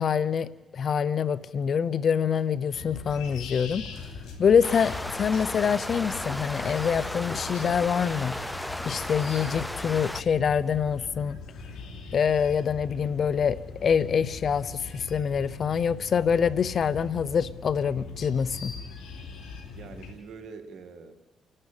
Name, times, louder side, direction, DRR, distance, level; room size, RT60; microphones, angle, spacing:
voice 1, 0.0-3.8 4.4-8.3 8.8-11.4 12.1-18.7, left 7 dB, 60° left, 18 dB, 0.8 m, -25 dB
sound 1, 2.7-20.1, left 4 dB, 85° left, 3.6 m, -41 dB
sound 2, 4.6-10.2, left 1 dB, 5° left, 0.6 m, -35 dB
voice 2, 19.7-21.1, right 5 dB, 75° right, 7 dB, 2.1 m, -44 dB
29.0 x 12.0 x 7.4 m, 1.1 s
cardioid pair, 70°, 0 cm